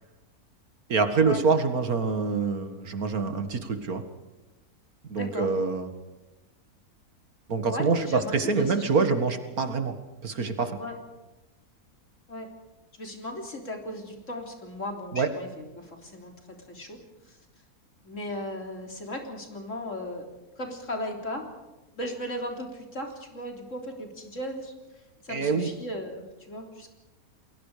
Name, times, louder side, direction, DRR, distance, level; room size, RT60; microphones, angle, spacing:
voice 1, 0.9-4.0 5.1-5.9 7.5-9.9 10.2-10.8 15.1-15.3 25.3-25.7, right 4 dB, 70° right, 8 dB, 2.4 m, -25 dB
voice 2, 5.2-5.5 7.7-8.8 10.8-11.0 12.3-12.5 13.0-16.3 16.7-17.0 17.3-17.4 18.0-20.3 20.6-21.4 22.0-24.7 25.2-26.9, left 1 dB, 55° left, 3 dB, 3.9 m, -36 dB
29.5 x 21.0 x 5.1 m, 1.1 s
omnidirectional pair, 1.6 m